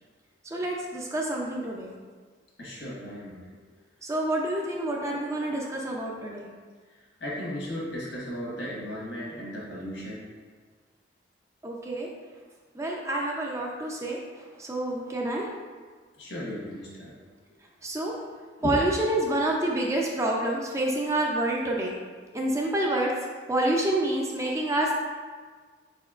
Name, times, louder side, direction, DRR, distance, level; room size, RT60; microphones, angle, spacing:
voice 1, 0.4-1.9 4.0-6.5 11.6-12.1 12.7-15.5 17.8-18.1 18.6-21.9 22.3-23.1 23.5-24.9, right 1 dB, 15° right, -1 dB, 0.4 m, -28 dB
voice 2, 2.6-3.4 7.2-10.2 16.2-17.1 18.6-18.8, left 1 dB, 75° left, -5 dB, 1.4 m, -35 dB
4.7 x 4.2 x 2.4 m, 1.5 s
head